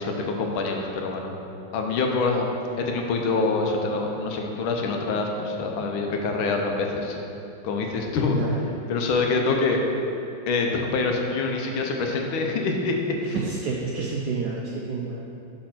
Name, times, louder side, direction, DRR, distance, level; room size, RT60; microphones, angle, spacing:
voice 1, 0.0-1.3 1.7-7.2 7.6-8.4 8.9-9.8 10.5-13.0 13.2-13.4, left 3 dB, 75° left, 2 dB, 1.4 m, -25 dB
voice 2, 13.3-15.2, right 4 dB, 75° right, -3 dB, 0.9 m, -29 dB
5.2 x 4.4 x 5.8 m, 2.7 s
omnidirectional pair, 2.3 m